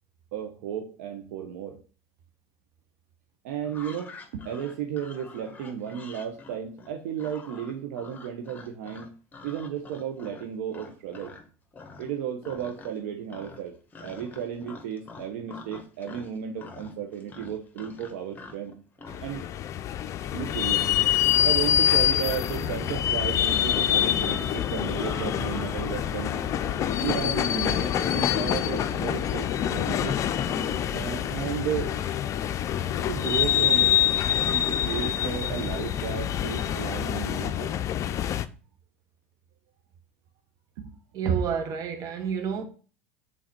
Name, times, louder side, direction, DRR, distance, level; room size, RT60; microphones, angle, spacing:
voice 1, 0.3-1.8 3.4-9.1 9.4-11.3 12.0-13.7 14.0-18.7 19.2-19.4 20.3-20.9 21.4-26.4 27.0-30.2 30.9-32.0 33.1-34.0 34.4-37.8 40.8-40.9, right 9 dB, 70° right, 0.9 m, -34 dB
sound 1, 3.6-11.5 11.7-12.2 12.4-13.0 13.3-19.3, left 4 dB, 20° left, 1.4 m, -46 dB
sound 2, 19.1-38.5, left 11 dB, 40° left, 0.5 m, -26 dB
sound 3, 23.4-36.7, right 3 dB, 20° right, 2.1 m, -44 dB
voice 2, 41.1-42.7, right 7 dB, 50° right, 1.4 m, -28 dB
6.1 x 4.0 x 4.4 m
hypercardioid pair, 85°, 8 cm